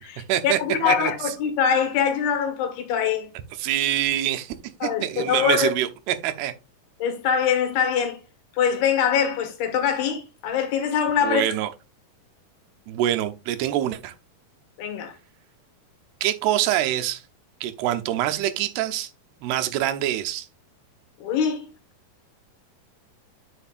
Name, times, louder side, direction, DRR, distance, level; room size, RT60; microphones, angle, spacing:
voice 1, 0.0-3.3 4.8-5.7 7.0-8.2 8.5-11.4 14.8-15.1 21.2-21.7, left 7 dB, 80° left, 3.6 m, -23 dB
voice 2, 3.6-4.5 4.8-6.5 11.2-11.7 12.9-14.1 16.2-17.2 17.6-19.1 19.4-20.5, right 12 dB, 85° right, 2.8 m, -25 dB
9.8 x 6.4 x 2.5 m
omnidirectional pair, 4.5 m